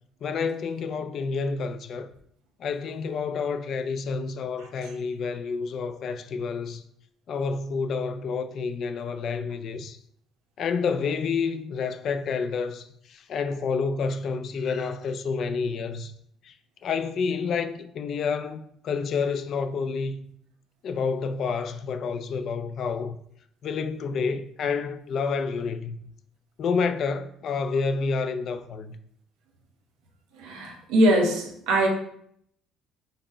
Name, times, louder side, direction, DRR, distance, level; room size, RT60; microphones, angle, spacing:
voice 1, 0.2-2.1 2.6-6.8 7.3-10.0 10.6-16.1 16.4-16.5 16.8-20.3 20.8-23.2 23.6-26.0 26.6-29.0, left 5 dB, 55° left, 0.4 m, -29 dB
voice 2, 30.3-31.9, right 1 dB, 90° right, 1.0 m, -22 dB
5.2 x 2.1 x 4.3 m
cardioid pair, 115°, 0 cm